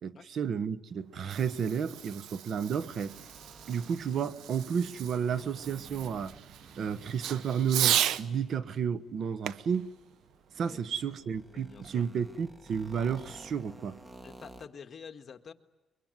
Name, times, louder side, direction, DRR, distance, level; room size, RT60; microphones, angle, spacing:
voice 1, 0.0-3.2 3.7-6.3 6.8-9.9 10.6-14.0, right 7 dB, 60° right, 14 dB, 1.2 m, -32 dB
Fireworks, 1.0-8.3 9.4-11.1, right 11 dB, 85° right, 0.8 m, -35 dB
sound 1, 2.9-14.7, right 2 dB, 20° right, 1.9 m, -54 dB
voice 2, 11.5-12.0 14.2-15.5, left 6 dB, 45° left, 7 dB, 1.6 m, -48 dB
24.5 x 23.0 x 9.6 m, 1.0 s
cardioid pair, 90°, 0 cm